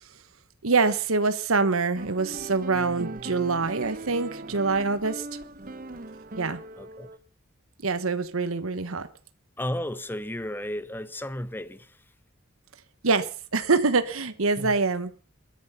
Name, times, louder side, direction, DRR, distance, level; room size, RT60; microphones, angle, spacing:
voice 1, 0.6-5.4 6.4-6.6 7.8-9.1 13.0-15.1, right 4 dB, 80° right, 1.1 m, -25 dB
sound 1, 2.0-7.2, right 2 dB, 40° right, 1.0 m, -39 dB
voice 2, 4.5-4.9 6.8-7.1 9.6-12.0 14.6-14.8, left 1 dB, 10° left, 0.8 m, -34 dB
21.5 x 10.5 x 5.6 m
head